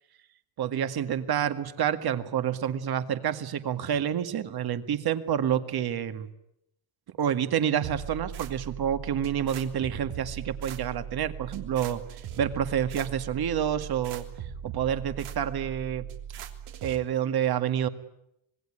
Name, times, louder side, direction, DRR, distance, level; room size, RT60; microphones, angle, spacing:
voice 1, 0.6-6.3 7.2-14.3 14.6-16.1 16.8-17.9, right 9 dB, 50° right, 10 dB, 2.0 m, -28 dB
sound 1, 7.8-17.0, right 8 dB, 85° right, 3.4 m, -39 dB
26.0 x 20.5 x 10.0 m, 0.80 s
cardioid pair, 145°, 49 cm